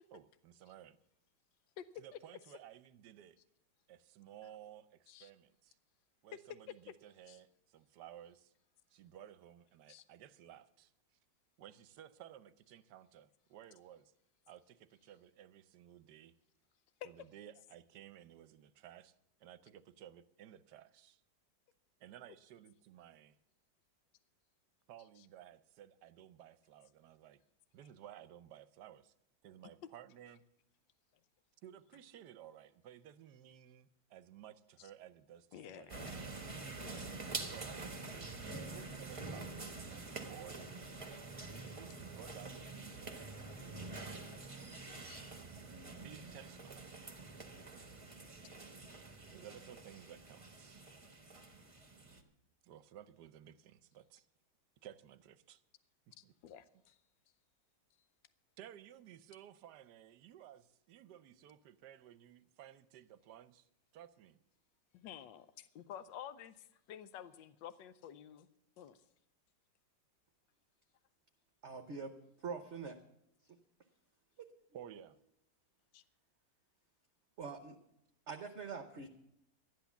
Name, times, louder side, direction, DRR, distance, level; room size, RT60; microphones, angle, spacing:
voice 1, 0.1-1.0 2.0-3.4 3.9-5.8 6.2-8.5 8.9-10.9 11.6-14.1 14.5-16.3 17.0-19.1 19.4-21.2 22.0-23.4 24.9-27.4 27.7-29.1 29.4-30.4 31.6-36.2 37.4-38.0 38.4-40.7 41.4-43.2 45.2-45.6 46.0-46.8 49.3-50.8 52.6-54.3 54.8-55.6 56.1-56.3 58.6-63.7 63.9-64.4 74.7-75.2, right 11 dB, 70° right, 14 dB, 1.2 m, -56 dB
voice 2, 35.5-36.4 36.8-37.3 43.9-44.3 45.0-45.2 56.2-57.0 64.9-68.5 68.8-69.0 75.9-76.0, left 10 dB, 80° left, 14 dB, 1.3 m, -51 dB
sound 1, 35.9-52.2, right 3 dB, 20° right, 1.0 m, -47 dB
voice 3, 71.6-72.1 72.4-73.0 74.4-74.5 77.4-77.8 78.3-79.1, right 5 dB, 50° right, 6 dB, 0.9 m, -44 dB
13.0 x 10.5 x 7.0 m, 0.80 s
omnidirectional pair, 2.0 m